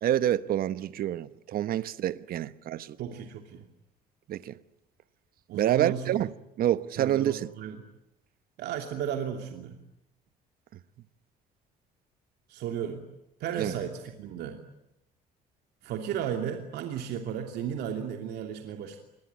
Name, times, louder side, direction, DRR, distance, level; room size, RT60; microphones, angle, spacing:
voice 1, 0.0-3.0 4.3-4.5 5.5-6.3 6.6-7.5 13.6-13.8, right 11 dB, 60° right, 1.1 m, -27 dB
voice 2, 3.0-3.6 5.5-6.0 7.0-7.8 8.6-9.8 12.5-13.1 13.4-14.6 15.8-19.0, right 9 dB, 75° right, 2.9 m, -34 dB
27.0 x 21.5 x 9.5 m
cardioid pair, 110°, 17 cm